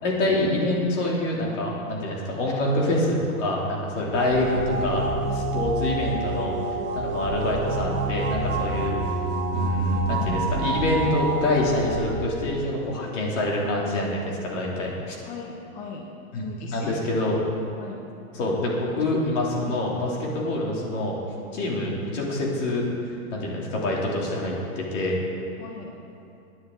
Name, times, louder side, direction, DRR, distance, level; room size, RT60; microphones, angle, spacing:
voice 1, 0.0-5.0 5.3-6.6 6.9-8.9 9.5-15.2 16.3-17.4 18.3-21.2 21.5-22.8 23.3-25.2, left 1 dB, 60° left, -3 dB, 3.3 m, -26 dB
sound 1, 4.1-12.1, right 2 dB, 25° right, 1.5 m, -27 dB
voice 2, 15.2-16.1 16.3-17.1 17.8-18.1 25.6-26.0, left 4 dB, 20° left, 0 dB, 0.7 m, -38 dB
16.0 x 9.6 x 4.0 m, 2.7 s
hypercardioid pair, 150°, 43 cm